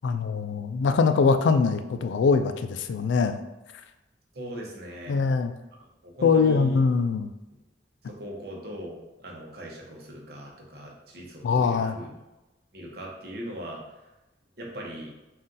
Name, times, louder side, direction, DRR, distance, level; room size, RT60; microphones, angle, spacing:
voice 1, 0.0-3.4 5.1-5.5 6.2-7.3 11.4-11.9, left 5 dB, 85° left, 9 dB, 0.3 m, -22 dB
voice 2, 4.3-5.2 6.0-6.8 8.0-12.2 12.7-13.8 14.6-15.1, equal, 60° right, -2 dB, 0.9 m, -39 dB
4.0 x 2.4 x 3.8 m, 0.99 s
head